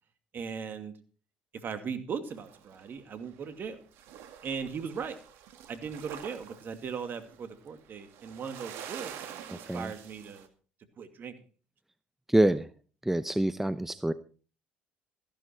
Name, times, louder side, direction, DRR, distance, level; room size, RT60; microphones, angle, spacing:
voice 1, 0.3-0.9 1.5-3.8 4.4-5.2 5.7-10.5 11.0-11.3, right 6 dB, 50° right, 8 dB, 2.5 m, -38 dB
sound 1, 2.3-3.7 3.9-10.5, right 9 dB, 70° right, 1.9 m, -47 dB
voice 2, 9.5-9.9 12.3-12.7 13.1-14.1, right 1 dB, 5° right, 13 dB, 0.8 m, -26 dB
15.0 x 11.5 x 4.5 m, 0.39 s
hypercardioid pair, 60°, 4 cm